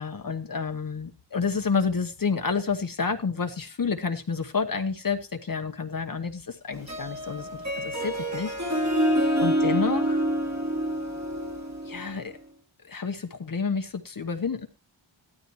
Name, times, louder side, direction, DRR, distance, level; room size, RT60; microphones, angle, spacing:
voice 1, 0.0-8.9 9.4-10.2 11.8-12.4 12.9-14.7, left 5 dB, 45° left, 6 dB, 1.1 m, -29 dB
Harp, 6.7-12.3, equal, 35° right, 2.4 m, -27 dB
15.0 x 12.5 x 3.1 m, 0.29 s
wide cardioid pair, 85°, 46 cm